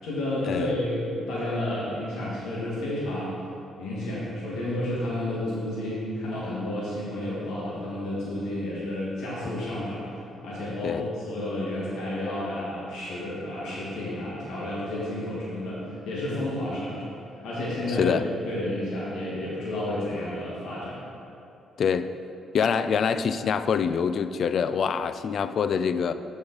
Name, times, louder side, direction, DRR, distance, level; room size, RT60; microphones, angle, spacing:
voice 1, 0.0-3.4 3.8-17.0 17.4-18.1 18.4-21.0, left 1 dB, 80° left, -7 dB, 1.6 m, -31 dB
voice 2, 17.9-18.3 21.8-22.1 22.5-26.1, left 6 dB, 60° left, 12 dB, 0.3 m, -25 dB
8.3 x 5.2 x 4.0 m, 2.8 s
cardioid pair, 90°, 0 cm